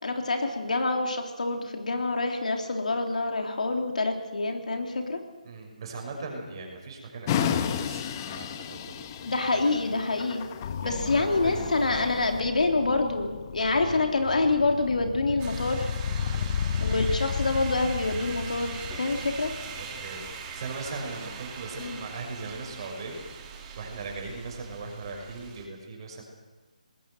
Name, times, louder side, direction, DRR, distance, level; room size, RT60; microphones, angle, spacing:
voice 1, 0.0-5.2 9.2-10.5 10.8-15.9 16.8-19.5 21.8-22.0, left 3 dB, 70° left, 4 dB, 3.5 m, -27 dB
voice 2, 5.4-9.8 10.8-11.7 16.2-16.4 19.8-26.2, right 3 dB, 35° right, 2 dB, 6.0 m, -39 dB
sound 1, 7.3-12.4, left 8 dB, 25° left, 1.2 m, -32 dB
sound 2, 10.6-20.7, left 7 dB, 40° left, 0.9 m, -34 dB
sound 3, 15.4-25.7, right 6 dB, 20° right, 2.5 m, -41 dB
20.0 x 18.0 x 8.0 m, 1.3 s
figure-of-eight pair, 155°, 4 cm